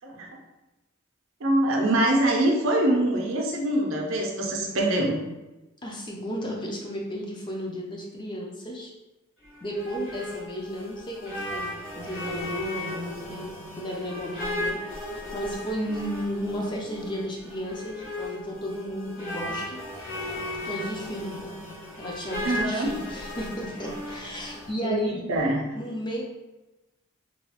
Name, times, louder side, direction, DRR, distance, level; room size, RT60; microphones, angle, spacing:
voice 1, 1.4-5.2 22.4-22.9 24.8-25.6, right 1 dB, 70° right, 0 dB, 0.5 m, -24 dB
voice 2, 5.8-8.9 9.6-11.7 12.0-14.8 15.3-19.8 20.6-21.5 22.0-25.3 25.7-26.2, equal, 20° left, -2 dB, 0.4 m, -33 dB
sound 1, 9.4-24.7, left 1 dB, 70° left, 1.1 m, -36 dB
2.9 x 2.3 x 2.9 m, 1.0 s
head